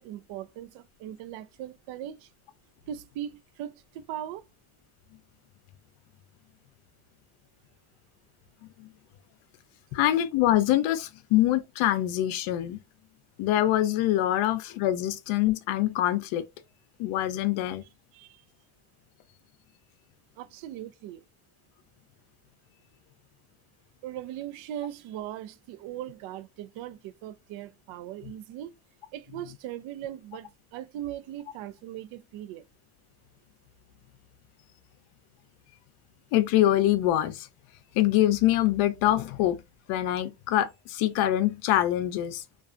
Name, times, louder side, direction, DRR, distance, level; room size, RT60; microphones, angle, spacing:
voice 1, 0.0-2.3 2.9-4.5 18.1-18.4 20.4-21.2 24.0-28.7 29.1-32.7, right 11 dB, 75° right, 0.5 m, -39 dB
voice 2, 9.9-12.8 13.4-16.4 17.0-17.8 36.3-37.5 37.9-39.6 39.9-42.4, left 13 dB, 85° left, 0.6 m, -24 dB
2.4 x 2.3 x 2.4 m
cardioid pair, 95°, 46 cm